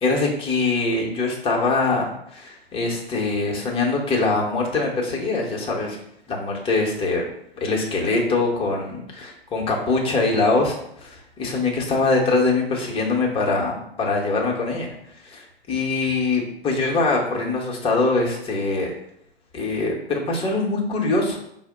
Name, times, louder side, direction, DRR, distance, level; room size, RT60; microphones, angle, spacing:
voice 1, 0.0-6.0 6.3-7.2 7.6-14.9 15.2-18.9 19.5-21.4, left 3 dB, 20° left, -1 dB, 0.9 m, -23 dB
4.8 x 2.1 x 4.7 m, 0.75 s
figure-of-eight pair, 105°, 30 cm